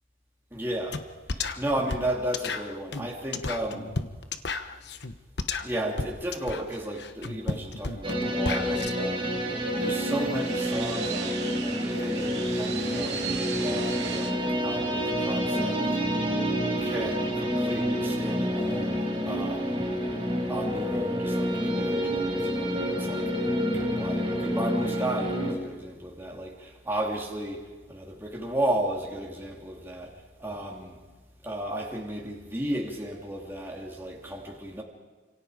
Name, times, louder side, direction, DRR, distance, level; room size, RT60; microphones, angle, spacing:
voice 1, 0.5-1.0 1.3-3.9 5.6-9.3 9.8-16.0 16.8-19.9 20.5-30.1 30.4-31.0 31.4-34.8, right 1 dB, 10° right, 3.0 m, -34 dB
sound 1, 0.9-1.0 1.3-8.9, left 3 dB, 70° left, 1.1 m, -33 dB
sound 2, 8.0-25.5, equal, 30° right, 4.8 m, -28 dB
sound 3, 9.2-14.3, right 6 dB, 70° right, 2.8 m, -38 dB
29.5 x 27.0 x 5.1 m
head